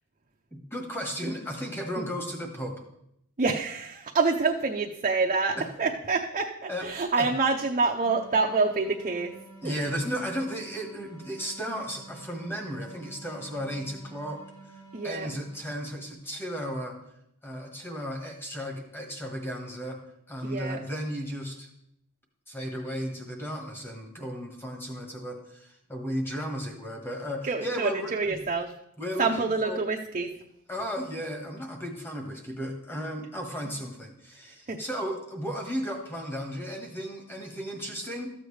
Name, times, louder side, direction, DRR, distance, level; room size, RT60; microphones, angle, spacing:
voice 1, 0.5-2.8 5.6-5.7 6.7-7.3 9.6-14.4 15.0-17.0 17.4-20.0 20.3-21.7 22.5-28.4 29.0-29.8 30.7-38.3, equal, 10° left, 2 dB, 1.5 m, -35 dB
voice 2, 3.4-9.3 9.6-9.8 14.9-15.3 20.4-20.8 27.4-28.7 29.2-30.3 34.7-34.8, right 4 dB, 35° right, 1 dB, 0.6 m, -27 dB
sound 1, 8.0-16.2, right 3 dB, 80° left, 3.2 m, -50 dB
13.5 x 7.8 x 3.3 m, 0.76 s
head